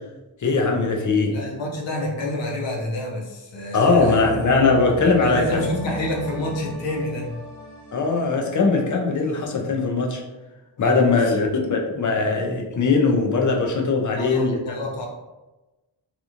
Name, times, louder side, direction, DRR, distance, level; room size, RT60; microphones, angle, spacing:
voice 1, 0.4-1.3 3.7-5.6 7.9-10.2 10.8-14.6, left 4 dB, 40° left, 1 dB, 0.5 m, -20 dB
voice 2, 1.3-4.2 5.2-7.3 10.8-11.3 14.1-15.1, left 1 dB, 70° left, -1 dB, 0.8 m, -28 dB
sound 1, 3.9-9.6 9.9-10.0, right 1 dB, 15° left, 0.9 m, -37 dB
2.9 x 2.4 x 2.5 m, 1.1 s
wide cardioid pair, 135°, 46 cm